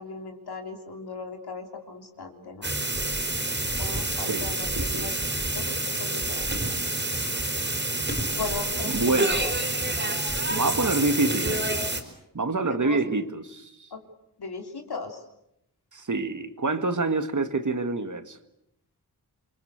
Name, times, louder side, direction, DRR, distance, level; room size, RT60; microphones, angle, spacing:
voice 1, 0.0-2.7 3.8-5.2 5.5-6.7 8.3-9.5 9.9-10.1 12.0-12.1 12.7-13.0 13.9-14.0 14.4-15.2, left 4 dB, 85° left, 5 dB, 3.4 m, -38 dB
sound 1, 2.6-12.0, right 2 dB, 30° right, 4.2 m, -28 dB
voice 2, 4.8-5.1 8.8-9.5 10.5-11.6 12.3-13.9 15.9-18.4, right 3 dB, 50° right, 9 dB, 2.1 m, -27 dB
27.5 x 23.5 x 8.2 m, 0.80 s
wide cardioid pair, 70°, 38 cm